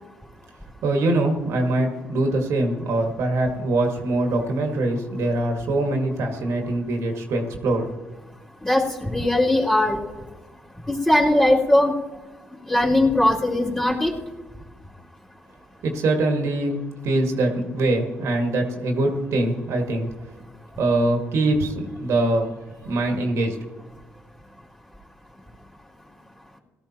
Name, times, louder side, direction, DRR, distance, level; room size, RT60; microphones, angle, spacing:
voice 1, 0.8-7.9 15.8-16.8 17.0-20.1 20.8-22.6 22.9-23.6, right 2 dB, 65° right, 3 dB, 1.9 m, -23 dB
voice 2, 8.6-10.0 10.9-11.9 12.7-14.1, left 1 dB, 10° left, -4 dB, 3.0 m, -19 dB
18.0 x 13.0 x 3.0 m, 1.2 s
hypercardioid pair, 55°, 5 cm